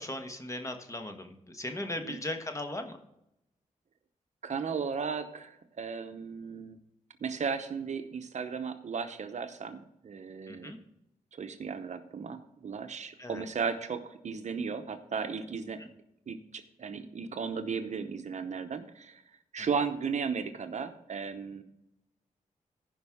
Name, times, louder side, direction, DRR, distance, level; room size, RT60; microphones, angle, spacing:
voice 1, 0.0-3.0 10.5-10.8 13.2-13.4 19.6-19.7, left 1 dB, 25° left, 5 dB, 1.3 m, -38 dB
voice 2, 4.4-6.8 7.2-10.7 11.3-15.8 16.3-21.6, right 5 dB, 60° right, 9 dB, 0.8 m, -35 dB
15.5 x 5.4 x 3.6 m, 0.81 s
cardioid pair, 90°, 14 cm